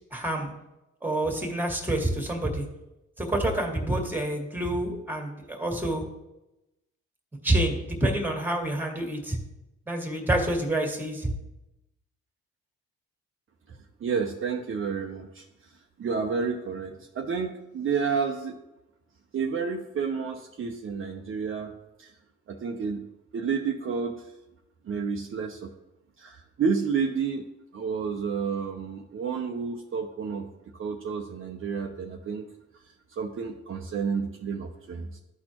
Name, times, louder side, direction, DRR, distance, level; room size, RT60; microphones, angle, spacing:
voice 1, 0.1-0.5 1.0-2.6 3.2-6.0 7.4-9.4 9.9-11.3, right 1 dB, 5° right, 2 dB, 1.7 m, -27 dB
voice 2, 13.7-15.7 16.0-18.6 19.3-21.7 22.0-22.1 22.5-23.1 23.3-24.3 24.8-25.7 26.2-32.5 32.7-35.2, right 5 dB, 45° right, 2 dB, 0.7 m, -30 dB
13.0 x 4.3 x 2.9 m, 0.95 s
cardioid pair, 90°, 30 cm